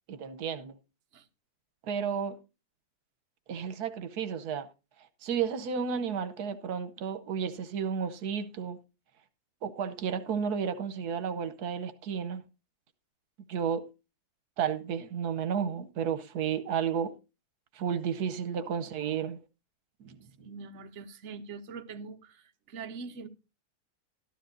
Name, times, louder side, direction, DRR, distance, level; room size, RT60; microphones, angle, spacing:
voice 1, 0.1-0.8 1.8-2.4 3.5-4.7 5.2-8.8 9.6-12.4 13.5-13.9 14.6-17.2 17.7-19.4 20.0-20.5, right 7 dB, 80° right, 1.4 m, -32 dB
voice 2, 20.4-23.3, right 5 dB, 55° right, 1.2 m, -43 dB
13.0 x 12.5 x 2.6 m
omnidirectional pair, 1.6 m